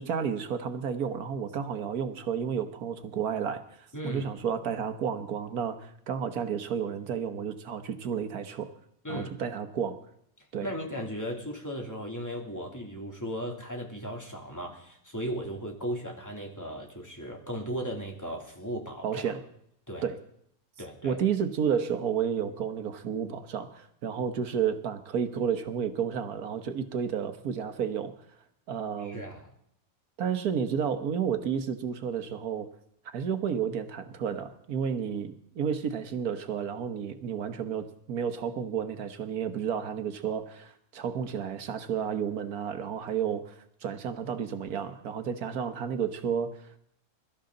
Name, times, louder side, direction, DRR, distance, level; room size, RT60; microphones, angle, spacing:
voice 1, 0.0-8.7 9.1-10.0 10.5-10.7 19.0-19.4 20.0-20.2 21.0-28.1 28.7-29.3 30.2-32.7 33.0-46.8, right 7 dB, 90° right, 9 dB, 1.6 m, -31 dB
voice 2, 3.9-4.3 9.0-9.3 10.6-19.2 19.9-20.0 20.8-21.2 29.0-29.5, equal, 10° left, 0 dB, 3.0 m, -36 dB
23.0 x 13.0 x 3.9 m, 0.69 s
omnidirectional pair, 1.5 m